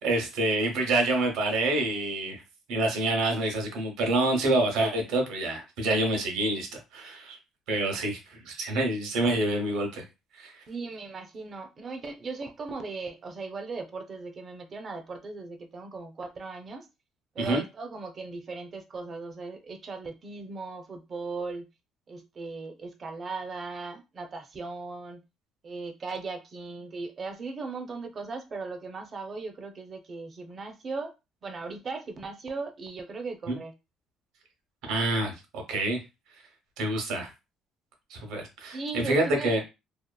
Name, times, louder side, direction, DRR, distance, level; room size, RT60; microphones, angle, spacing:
voice 1, 0.0-2.4 2.7-6.7 6.9-7.4 7.7-10.0 10.4-10.5 17.4-17.6 33.5-33.6 34.9-36.0 36.8-37.3 38.1-38.8 39.1-39.6, right 2 dB, 85° right, 0.9 m, -27 dB
voice 2, 10.7-16.9 17.3-21.7 22.1-25.2 25.6-31.1 31.4-33.7 38.7-39.6, right 4 dB, 35° right, 0.5 m, -38 dB
2.8 x 2.4 x 2.2 m
cardioid pair, 115°, 0 cm